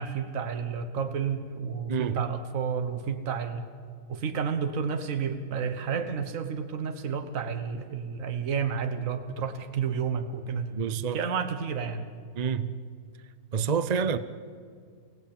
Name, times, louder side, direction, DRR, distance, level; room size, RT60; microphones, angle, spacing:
voice 1, 0.0-3.6 4.1-10.7 11.1-12.0, right 6 dB, 65° right, 1.6 m, -31 dB
voice 2, 1.9-2.2 10.7-11.2 12.3-12.8 13.5-14.2, right 6 dB, 40° right, 0.6 m, -28 dB
29.5 x 17.5 x 8.8 m
omnidirectional pair, 1.6 m